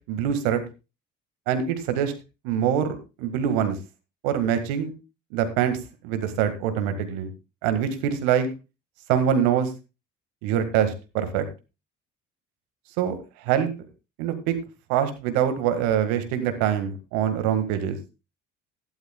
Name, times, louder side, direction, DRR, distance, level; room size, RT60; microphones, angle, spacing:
voice 1, 0.1-0.6 1.5-2.1 2.4-3.8 4.2-4.9 5.3-5.8 6.0-7.3 7.6-8.5 9.1-9.7 10.4-11.4 13.0-13.2 13.4-13.7 14.2-14.6 14.9-18.0, right 9 dB, 70° right, 9 dB, 1.8 m, -24 dB
16.5 x 12.0 x 2.3 m, 0.28 s
hypercardioid pair, 55°, 38 cm